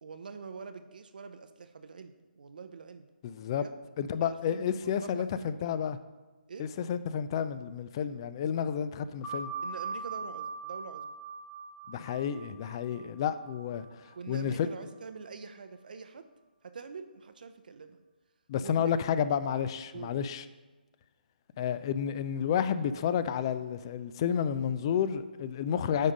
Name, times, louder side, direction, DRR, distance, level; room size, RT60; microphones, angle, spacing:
voice 1, 0.0-3.1 3.6-3.7 4.2-5.5 6.5-6.7 9.6-11.2 14.2-16.3 16.6-18.0 18.6-18.9 19.9-20.2, right 5 dB, 60° right, 0.7 m, -45 dB
voice 2, 3.2-3.6 4.0-6.0 6.6-9.5 11.9-14.7 18.5-20.4 21.6-26.1, left 8 dB, 30° left, 0.3 m, -31 dB
sound 1, 9.2-14.4, right 4 dB, 10° left, 1.7 m, -41 dB
9.1 x 3.6 x 5.2 m
figure-of-eight pair, 145°, 5 cm